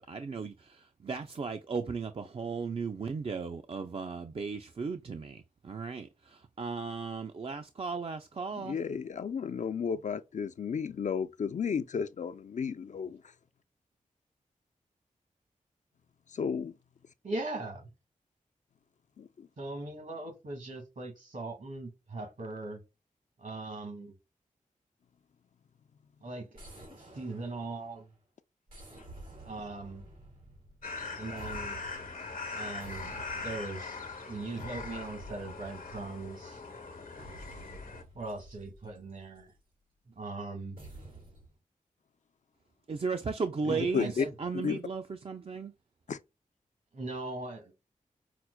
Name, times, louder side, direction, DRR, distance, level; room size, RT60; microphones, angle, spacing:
voice 1, 0.0-8.8 42.9-45.7, right 5 dB, 45° right, 0.4 m, -36 dB
voice 2, 8.5-13.2 16.3-16.7 19.2-19.5 43.7-44.3 44.5-44.8 46.1-46.2, left 6 dB, 60° left, 0.4 m, -33 dB
voice 3, 17.2-17.9 19.6-22.8 23.4-24.1 26.2-26.6 26.9-28.1 29.4-30.1 31.2-31.8 32.5-34.0 34.2-36.6 38.1-39.5 40.1-40.8 43.6-44.3 46.9-47.7, right 2 dB, 65° right, 1.6 m, -40 dB
sound 1, 26.5-28.1 28.7-31.0 31.4-32.2 32.8-33.8 34.6-36.4 37.2-39.6 40.8-41.5, right 2 dB, 90° right, 2.1 m, -50 dB
sound 2, 30.8-38.0, left 4 dB, 85° left, 0.9 m, -41 dB
5.7 x 2.1 x 2.2 m
cardioid pair, 45°, 14 cm